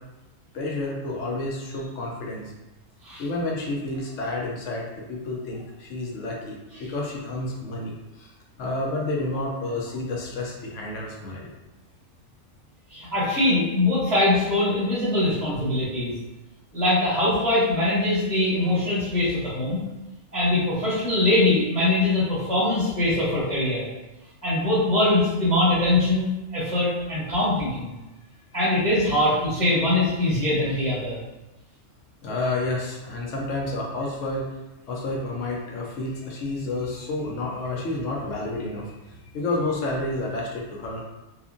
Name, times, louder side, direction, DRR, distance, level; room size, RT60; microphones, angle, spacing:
voice 1, 0.5-2.5 3.2-8.3 8.6-11.5 32.2-34.5 34.9-38.9 39.3-41.0, left 2 dB, 75° left, -2 dB, 1.0 m, -30 dB
voice 2, 12.9-16.1 16.7-19.8 20.3-23.8 24.4-27.9 28.5-31.2, left 1 dB, 5° left, -10 dB, 0.8 m, -22 dB
2.9 x 2.4 x 2.5 m, 1.0 s
omnidirectional pair, 1.3 m